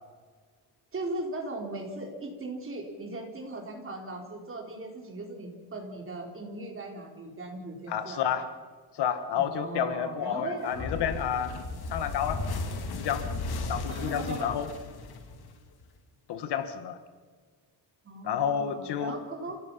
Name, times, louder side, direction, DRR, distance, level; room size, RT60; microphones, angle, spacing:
voice 1, 0.9-8.2 9.3-10.9 13.9-14.6 18.0-19.6, right 2 dB, 30° right, 2 dB, 4.6 m, -38 dB
voice 2, 7.9-8.5 8.9-11.5 11.9-13.3 13.6-14.7 16.3-17.0 18.2-19.2, left 8 dB, 90° left, 10 dB, 1.8 m, -30 dB
sound 1, 10.7-15.9, left 3 dB, 70° left, 2.7 m, -35 dB
28.5 x 16.5 x 5.8 m, 1.5 s
cardioid pair, 135°, 40 cm